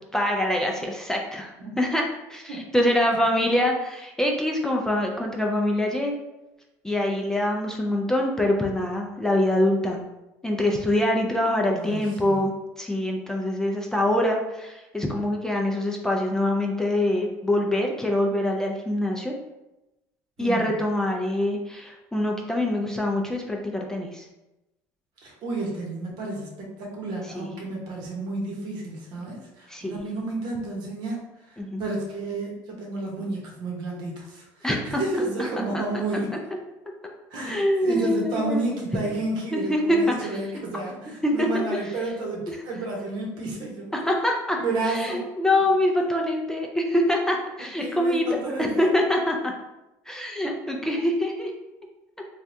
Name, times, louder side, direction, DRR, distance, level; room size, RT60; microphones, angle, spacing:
voice 1, 0.1-6.2 6.8-10.0 10.4-12.5 12.8-19.3 20.4-24.3 27.3-27.5 29.7-30.0 31.6-31.8 34.6-35.0 35.7-35.8 37.5-38.7 39.5-40.3 41.2-41.6 42.5-42.6 43.9-44.6 44.9-48.2 48.6-49.5 50.1-51.5, left 1 dB, 5° left, 0 dB, 0.4 m, -24 dB
voice 2, 11.7-12.4 20.4-20.7 25.2-36.3 37.3-43.9 44.6-45.2 47.8-48.9, right 2 dB, 65° right, -1 dB, 0.9 m, -31 dB
3.3 x 2.3 x 2.6 m, 0.97 s
supercardioid pair, 95°, 8 cm